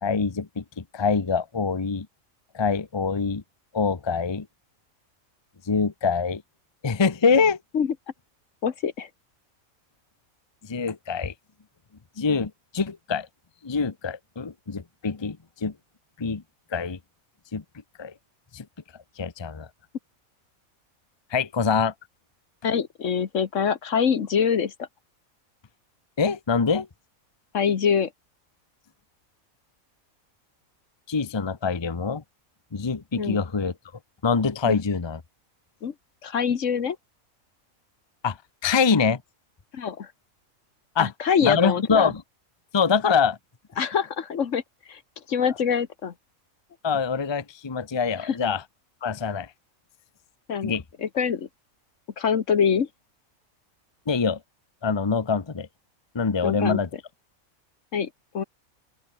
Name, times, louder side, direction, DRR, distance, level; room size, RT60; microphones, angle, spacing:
voice 1, 0.0-2.1 2.5-3.4 3.7-4.5 5.7-6.4 6.8-7.6 10.6-11.3 12.2-13.3 13.6-15.7 16.2-16.4 16.7-17.0 17.5-17.6 18.0-18.1 18.5-18.6 19.2-19.7 21.3-21.9 26.2-26.9 31.1-32.2 32.7-33.7 34.2-35.2 38.2-38.4 38.6-39.2 40.9-41.1 41.4-42.2 42.7-43.4 46.8-48.6 49.0-49.5 50.6-50.8 54.1-54.4 54.8-55.7 56.1-56.9, left 5 dB, 25° left, 0.8 m, -24 dB
voice 2, 8.6-9.1 22.6-24.9 27.5-28.1 33.2-33.4 34.7-34.8 35.8-35.9 36.2-37.0 39.7-40.1 41.0-42.1 43.8-44.6 44.9-45.0 45.3-46.1 48.2-48.4 50.5-50.7 51.0-51.5 52.2-52.9 56.4-56.8 57.9-58.4, left 7 dB, 65° left, 1.5 m, -24 dB
open air
omnidirectional pair, 1.4 m